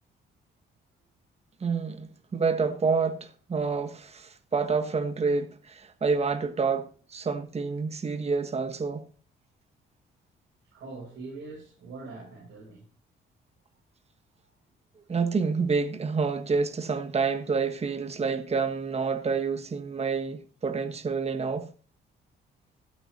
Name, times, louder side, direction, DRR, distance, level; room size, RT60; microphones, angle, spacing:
voice 1, 1.6-9.1 15.1-21.7, right 5 dB, 30° right, 1.4 m, -28 dB
voice 2, 10.7-12.9, right 3 dB, 70° right, 7.8 m, -42 dB
17.0 x 8.0 x 4.1 m
cardioid pair, 90°, 20 cm